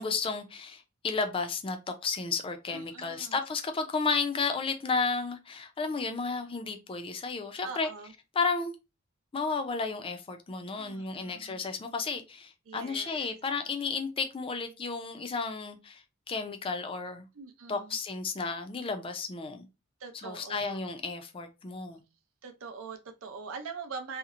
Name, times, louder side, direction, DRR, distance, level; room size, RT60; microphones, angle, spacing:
voice 1, 0.0-1.8 2.0-7.9 8.4-8.8 9.3-17.3 17.7-19.7 20.2-22.0, left 4 dB, 25° left, 0.4 m, -33 dB
voice 2, 2.7-3.4 7.6-8.1 10.8-11.6 12.7-13.3 17.3-18.0 20.0-20.8 22.4-24.2, right 5 dB, 75° right, 0.5 m, -43 dB
2.8 x 2.0 x 2.4 m
head